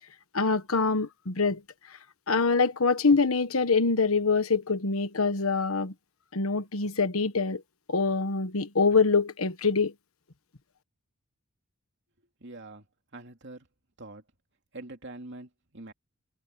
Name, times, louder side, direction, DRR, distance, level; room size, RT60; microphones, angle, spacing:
voice 1, 0.3-1.6 2.3-5.9 6.3-7.6 7.9-9.9, left 4 dB, 75° left, 1.3 m, -25 dB
voice 2, 12.4-12.9 13.1-13.7 14.0-14.2 14.7-15.9, right 2 dB, 55° right, 2.7 m, -44 dB
head